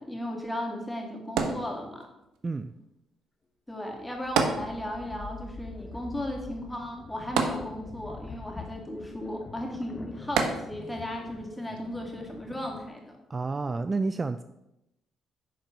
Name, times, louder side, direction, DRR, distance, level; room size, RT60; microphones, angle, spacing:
voice 1, 0.0-2.1 3.7-13.2, left 1 dB, 10° left, 0 dB, 2.5 m, -36 dB
sound 1, 1.4-2.3 4.4-5.2 5.5-5.6 7.4-8.2 10.4-11.1 11.8-11.9, right 5 dB, 90° right, 1.1 m, -29 dB
voice 2, 2.4-2.7 13.3-14.4, right 3 dB, 30° right, 11 dB, 0.4 m, -30 dB
sound 2, 4.0-12.9, left 3 dB, 30° left, 1.1 m, -45 dB
10.5 x 4.4 x 6.0 m, 0.89 s
cardioid pair, 90°, 0 cm